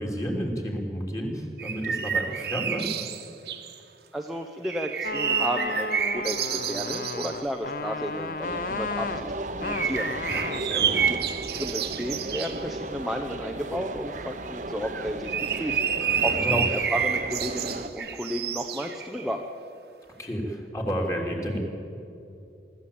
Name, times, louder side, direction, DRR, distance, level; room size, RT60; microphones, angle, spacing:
voice 1, 0.0-2.9 10.3-11.1 16.0-16.6 20.2-21.6, equal, 20° left, 0 dB, 3.3 m, -31 dB
sound 1, 1.6-3.8 4.6-7.4 9.6-12.6 14.8-19.4, right 7 dB, 70° right, 1.5 m, -29 dB
voice 2, 4.1-10.1 11.1-11.2 11.5-19.4, equal, ahead, 2 dB, 0.9 m, -33 dB
sound 2, 5.0-10.6, left 3 dB, 50° left, 0.7 m, -33 dB
sound 3, 8.4-17.9, right 2 dB, 45° right, 1.1 m, -36 dB
24.0 x 14.0 x 8.7 m, 2.7 s
head